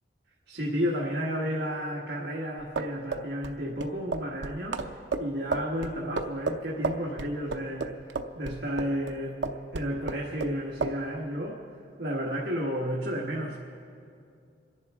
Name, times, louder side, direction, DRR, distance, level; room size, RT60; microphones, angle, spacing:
voice 1, 0.5-8.0 8.3-11.6 12.0-13.6, equal, 65° right, -3 dB, 1.3 m, -32 dB
sound 1, 2.6-9.1 9.4-10.5 10.8-11.0, right 3 dB, 85° right, 0.7 m, -32 dB
27.0 x 11.0 x 3.6 m, 2.5 s
head